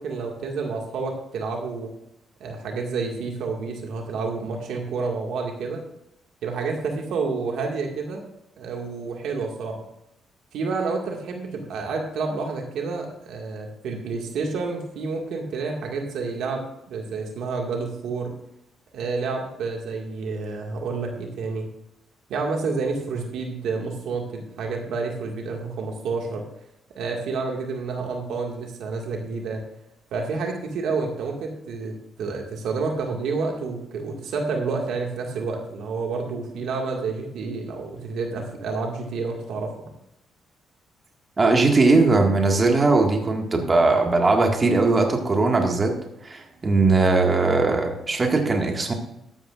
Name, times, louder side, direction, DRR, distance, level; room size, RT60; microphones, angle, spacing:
voice 1, 0.0-1.9 2.4-5.8 6.4-8.2 8.6-9.7 10.5-18.3 18.9-21.7 22.3-26.5 27.0-29.6 30.1-39.9, right 4 dB, 80° right, 1 dB, 2.0 m, -29 dB
voice 2, 41.4-48.9, right 3 dB, 30° right, 2 dB, 1.9 m, -20 dB
14.0 x 11.5 x 2.5 m, 0.81 s
cardioid pair, 90°, 0 cm